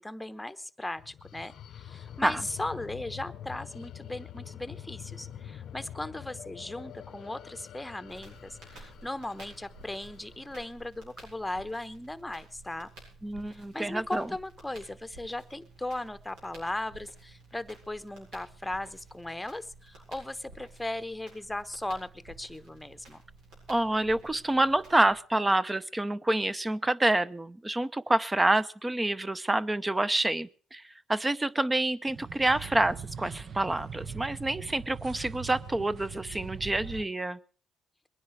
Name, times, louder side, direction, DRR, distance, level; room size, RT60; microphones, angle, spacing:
voice 1, 0.0-12.9 13.5-23.2, left 1 dB, 10° left, 13 dB, 1.0 m, -37 dB
sound 1, 1.0-10.7, left 10 dB, 70° left, 0.8 m, -46 dB
Crackle, 8.1-25.2, right 2 dB, 90° right, 7.9 m, -53 dB
voice 2, 13.2-14.3 23.7-30.8 31.1-37.4, right 1 dB, 15° right, 15 dB, 0.8 m, -27 dB
sound 2, 32.1-37.1, right 7 dB, 55° right, 1.1 m, -41 dB
22.0 x 10.0 x 4.8 m, 0.42 s
cardioid pair, 90°, 0 cm